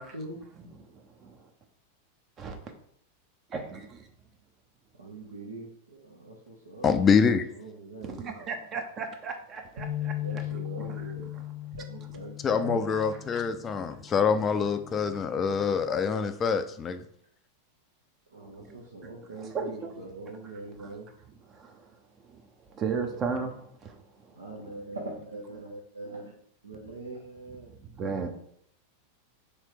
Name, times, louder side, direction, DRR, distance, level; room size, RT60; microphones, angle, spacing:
voice 1, 0.0-0.4 5.0-6.9 7.6-8.5 10.2-11.3 11.9-12.8 18.3-21.1 24.4-26.3 26.6-27.7, right 2 dB, 75° right, 0.7 m, -42 dB
voice 2, 0.6-1.5 2.4-2.7 3.5-4.1 8.0-10.4 10.8-11.4 13.3-14.1 18.4-19.9 20.4-20.5 20.8-20.9 21.5-21.9 22.2-24.3 27.7-28.3, right 5 dB, 30° right, 0.6 m, -37 dB
voice 3, 6.8-7.4 12.4-17.0, left 6 dB, 25° left, 0.4 m, -25 dB
sound 1, 9.8-16.0, left 13 dB, 50° right, 1.2 m, -39 dB
3.3 x 3.1 x 4.8 m
figure-of-eight pair, 90°, 0 cm